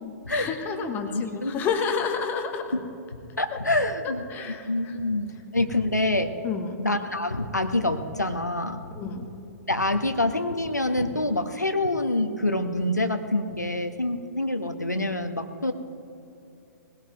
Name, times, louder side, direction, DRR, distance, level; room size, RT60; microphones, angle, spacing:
voice 1, 0.0-2.7 3.5-3.6 4.0-5.0 6.4-6.8 9.0-9.3, left 6 dB, 20° left, 5 dB, 1.1 m, -30 dB
voice 2, 1.0-1.6 3.4-4.2 4.7-6.3 6.8-8.8 9.7-15.7, left 2 dB, 85° left, 7 dB, 1.1 m, -26 dB
21.0 x 17.0 x 3.0 m, 2.7 s
figure-of-eight pair, 120°, 9 cm